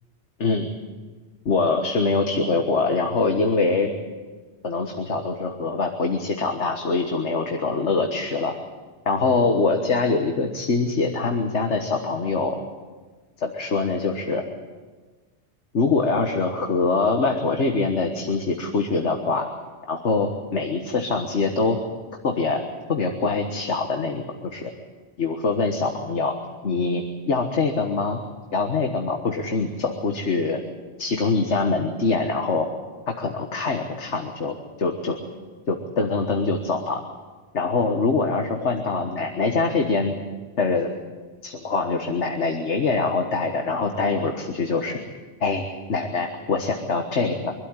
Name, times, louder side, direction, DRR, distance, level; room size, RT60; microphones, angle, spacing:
voice 1, 0.4-0.7 1.4-3.9 4.6-8.6 9.0-12.6 13.4-14.4 15.7-19.5 19.9-21.8 22.2-22.6 22.9-24.2 24.5-24.6 25.2-26.4 26.6-28.2 28.5-30.6 31.0-32.7 33.1-35.2 35.7-37.0 37.5-40.1 40.6-40.9 41.4-45.0 45.4-47.5, left 4 dB, 90° left, 4 dB, 1.8 m, -24 dB
24.0 x 12.5 x 9.8 m, 1.4 s
omnidirectional pair, 1.1 m